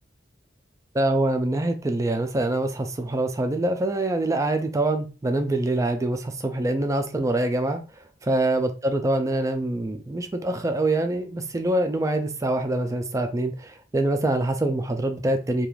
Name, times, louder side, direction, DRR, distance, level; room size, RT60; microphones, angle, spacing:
voice 1, 0.9-7.8 8.2-15.7, right 2 dB, 15° right, 0.4 m, -25 dB
2.4 x 2.3 x 3.1 m
head